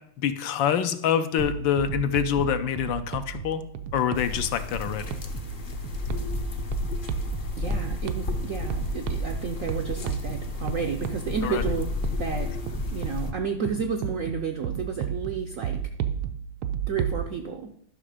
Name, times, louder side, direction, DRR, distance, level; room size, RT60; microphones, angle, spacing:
voice 1, 0.2-3.6 3.9-5.2 11.4-11.6, left 9 dB, 75° left, 10 dB, 1.3 m, -26 dB
sound 1, 1.4-17.2, right 9 dB, 85° right, 1.5 m, -34 dB
sound 2, 4.1-13.3, left 3 dB, 50° left, 0.6 m, -32 dB
voice 2, 7.6-12.5 12.9-15.8 16.9-17.7, right 6 dB, 70° right, 5 dB, 0.7 m, -31 dB
11.0 x 5.9 x 5.0 m, 0.67 s
omnidirectional pair, 2.2 m